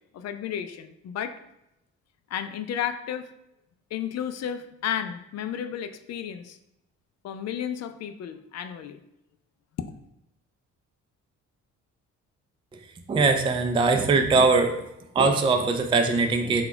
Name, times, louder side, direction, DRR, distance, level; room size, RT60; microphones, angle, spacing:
voice 1, 0.1-1.4 2.3-3.3 3.9-6.6 7.2-9.0, left 9 dB, 60° left, 9 dB, 0.4 m, -32 dB
voice 2, 13.1-14.9 15.1-16.6, right 3 dB, 15° right, 5 dB, 0.3 m, -21 dB
4.1 x 2.3 x 4.4 m, 0.86 s
cardioid pair, 90°, 30 cm